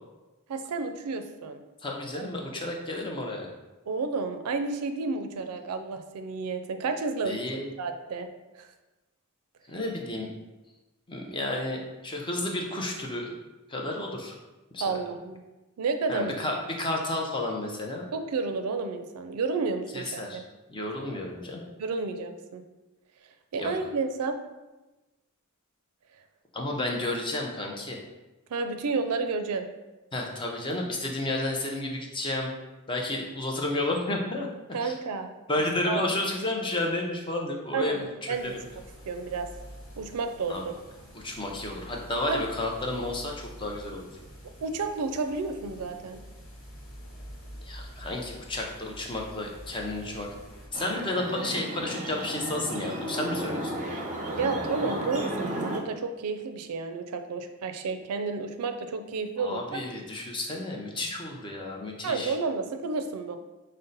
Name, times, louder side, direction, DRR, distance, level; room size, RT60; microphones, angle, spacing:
voice 1, 0.5-1.6 2.1-2.3 2.6-2.7 3.9-8.3 8.6-8.7 14.8-15.4 15.8-16.3 18.1-20.4 21.8-22.6 23.5-24.4 28.5-29.7 34.7-35.3 35.9-36.0 37.7-38.6 39.1-39.5 40.0-40.7 42.3-42.4 44.6-46.2 54.3-59.8 62.0-63.4, right 4 dB, 85° right, 7 dB, 0.4 m, -31 dB
voice 2, 1.8-3.5 7.3-7.7 9.7-10.3 11.1-13.3 13.7-14.4 14.7-14.9 16.1-18.1 19.9-20.4 20.7-21.6 23.6-23.7 26.5-28.0 30.1-32.5 32.9-34.5 34.8-34.9 35.5-38.6 40.5-40.6 41.1-44.1 47.6-50.3 50.7-53.9 59.4-62.3, left 2 dB, 20° left, 0 dB, 0.5 m, -31 dB
sound 1, 38.3-50.7, equal, 60° left, 1.2 m, -47 dB
sound 2, 50.7-55.8, right 1 dB, 35° right, 0.6 m, -33 dB
5.2 x 2.1 x 3.9 m, 1.1 s
head